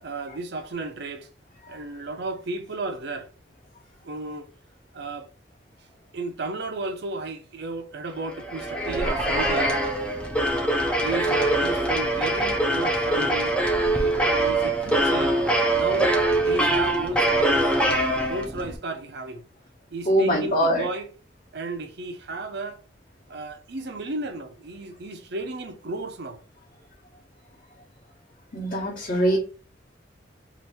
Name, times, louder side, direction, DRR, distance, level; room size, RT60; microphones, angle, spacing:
voice 1, 0.0-1.3 1.7-3.3 4.0-4.5 4.9-5.3 6.1-9.8 11.0-13.6 13.9-15.4 15.7-16.1 16.4-17.7 18.3-19.4 19.9-21.1 21.5-22.8 23.3-26.4, right 2 dB, 60° right, 0.6 m, -33 dB
sound 1, 8.3-18.7, right 1 dB, 5° left, 0.5 m, -23 dB
voice 2, 20.0-20.8 28.5-29.4, right 1 dB, 40° left, 1.0 m, -22 dB
2.9 x 2.6 x 3.3 m
head